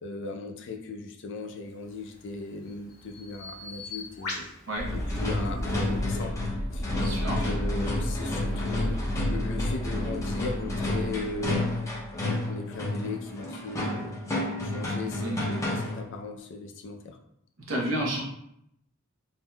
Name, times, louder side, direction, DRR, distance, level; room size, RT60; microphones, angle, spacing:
voice 1, 0.0-4.4 4.9-6.3 6.7-6.9 7.2-11.6 12.1-14.1 14.6-17.2, left 3 dB, 60° left, 2 dB, 0.4 m, -37 dB
Bird vocalization bird call bird song, 1.8-6.0, left 3 dB, 90° left, 0.8 m, -42 dB
sound 1, 4.8-12.2, equal, 30° right, 0.8 m, -33 dB
sound 2, 4.9-16.1, left 2 dB, 15° left, 0.6 m, -31 dB
voice 2, 6.9-7.4 15.2-15.4 17.7-18.2, right 1 dB, 65° right, -2 dB, 0.9 m, -30 dB
3.5 x 2.6 x 2.2 m, 0.76 s
head